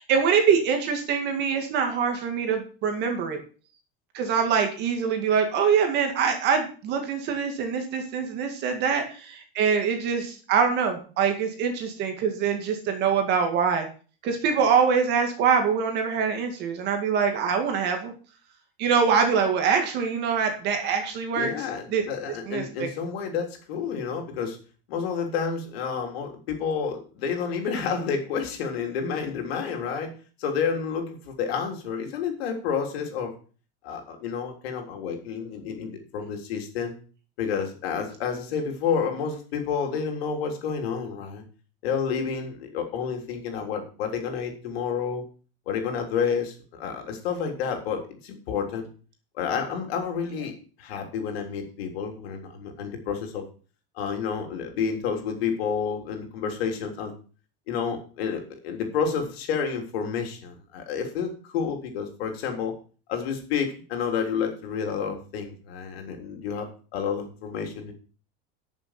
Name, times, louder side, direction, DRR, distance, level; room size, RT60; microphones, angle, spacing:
voice 1, 0.0-3.4 4.1-13.9 14.2-18.1 18.8-21.5 21.9-22.0 22.5-22.9, right 6 dB, 35° right, 5 dB, 2.0 m, -24 dB
voice 2, 21.4-24.6 24.9-30.1 30.4-33.3 33.8-37.0 37.4-41.4 41.8-45.2 45.7-48.9 49.4-53.4 54.0-57.1 57.7-62.7 63.1-66.7 66.9-67.9, left 6 dB, 75° left, 3 dB, 3.5 m, -30 dB
12.0 x 6.8 x 5.8 m, 0.39 s
supercardioid pair, 175°, 31 cm